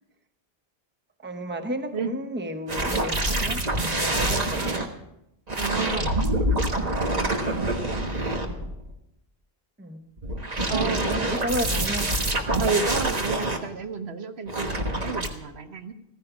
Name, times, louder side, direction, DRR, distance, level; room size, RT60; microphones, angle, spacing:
voice 1, 1.2-4.9 5.7-6.2 8.4-8.7 9.8-10.0 10.5-12.2, right 1 dB, 10° right, 0.8 m, -33 dB
sound 1, 2.7-4.9 5.5-8.9 10.2-13.6 14.5-15.3, right 1 dB, 40° right, 1.4 m, -26 dB
voice 2, 4.3-4.8 5.6-6.1 7.1-7.6 10.7-11.4 12.6-15.9, right 4 dB, 80° right, 1.3 m, -31 dB
15.0 x 15.0 x 5.0 m
omnidirectional pair, 1.1 m